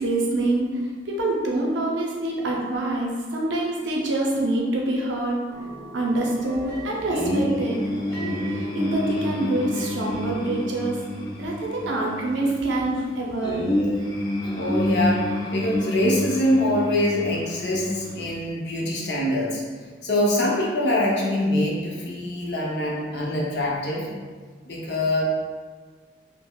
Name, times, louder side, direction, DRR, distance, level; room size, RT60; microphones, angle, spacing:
voice 1, 0.0-5.4 5.9-7.8 8.5-11.0 11.4-13.7, right 2 dB, 80° right, -2 dB, 0.6 m, -26 dB
sound 1, 5.5-10.7, right 1 dB, 35° right, 1.3 m, -40 dB
sound 2, 7.1-18.3, left 1 dB, 20° left, 0.3 m, -29 dB
voice 2, 14.5-24.1 24.7-25.2, left 1 dB, 70° left, -3 dB, 0.6 m, -24 dB
3.7 x 2.0 x 2.2 m, 1.5 s
head